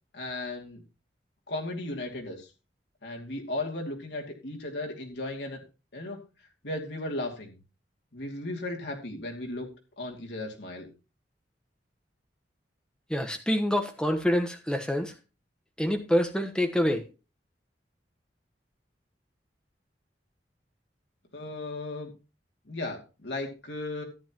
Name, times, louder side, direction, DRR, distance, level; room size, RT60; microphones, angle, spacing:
voice 1, 0.1-0.8 1.5-2.5 3.0-5.6 5.9-6.2 6.6-7.6 8.1-9.7 10.0-10.9 21.3-22.1 22.6-24.0, left 2 dB, 75° left, 0 dB, 2.6 m, -35 dB
voice 2, 13.1-15.1 15.8-17.0, equal, 5° left, 4 dB, 1.2 m, -26 dB
13.5 x 9.8 x 3.0 m, 0.32 s
head